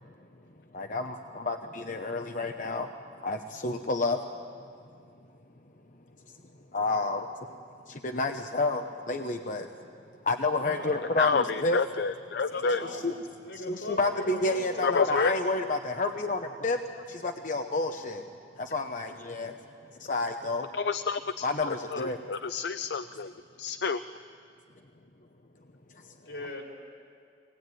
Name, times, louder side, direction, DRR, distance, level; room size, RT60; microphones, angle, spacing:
voice 1, 0.7-4.2 6.7-7.3 7.9-9.7 10.2-11.8 12.9-13.1 13.7-16.8 17.1-18.2 18.6-19.6 19.9-20.7 21.4-22.3 25.9-26.1, left 3 dB, 45° left, 5 dB, 0.9 m, -30 dB
voice 2, 10.5-11.4 12.5-13.0 13.4-15.0 26.2-26.6, left 1 dB, 85° left, 0 dB, 4.8 m, -39 dB
voice 3, 11.2-12.9 14.8-15.4 20.7-23.3 23.6-24.0, left 4 dB, 65° left, 12 dB, 0.5 m, -29 dB
23.0 x 19.0 x 9.3 m, 2.3 s
head